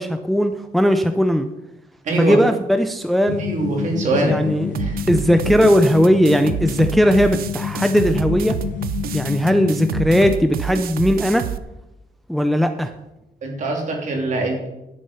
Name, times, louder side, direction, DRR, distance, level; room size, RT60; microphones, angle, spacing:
voice 1, 0.0-1.5 2.2-3.4 4.2-4.8 5.1-8.6 9.1-11.5 12.3-12.9, equal, ahead, 8 dB, 0.5 m, -18 dB
voice 2, 2.0-2.3 3.4-4.4 4.8-5.0 13.4-14.7, right 2 dB, 55° right, 0 dB, 3.3 m, -23 dB
sound 1, 3.3-10.3, left 9 dB, 60° left, 0.5 m, -28 dB
sound 2, 4.7-11.6, right 9 dB, 75° right, 0.6 m, -29 dB
11.0 x 8.7 x 5.7 m, 0.92 s
wide cardioid pair, 170°, 15 cm